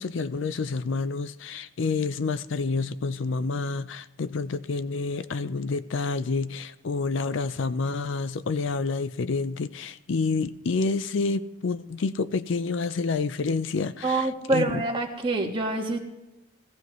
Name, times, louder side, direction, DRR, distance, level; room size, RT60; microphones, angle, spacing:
voice 1, 0.0-14.8, left 4 dB, 65° left, 0.5 m, -28 dB
voice 2, 14.0-16.0, right 2 dB, 25° right, 1.6 m, -26 dB
16.0 x 15.0 x 3.1 m
head